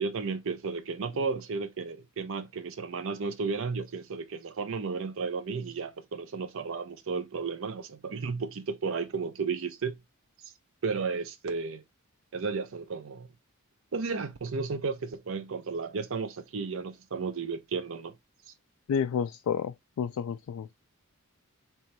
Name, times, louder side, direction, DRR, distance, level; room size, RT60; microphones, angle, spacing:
voice 1, 0.0-10.0 10.4-10.5 10.8-11.8 12.3-13.3 13.9-18.1, right 4 dB, 60° right, 0.6 m, -33 dB
voice 2, 18.9-20.7, left 7 dB, 70° left, 0.3 m, -30 dB
4.4 x 3.0 x 2.6 m
head